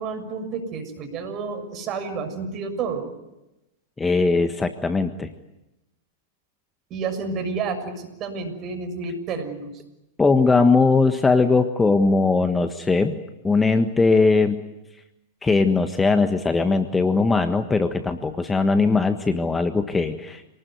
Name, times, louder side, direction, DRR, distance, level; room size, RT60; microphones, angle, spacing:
voice 1, 0.0-3.1 6.9-9.7, right 4 dB, 35° right, 7 dB, 6.7 m, -30 dB
voice 2, 4.0-5.3 10.2-13.2 13.4-14.6 15.4-20.4, left 3 dB, 15° left, 8 dB, 1.5 m, -20 dB
28.0 x 19.5 x 9.3 m, 0.95 s
hypercardioid pair, 105°, 0 cm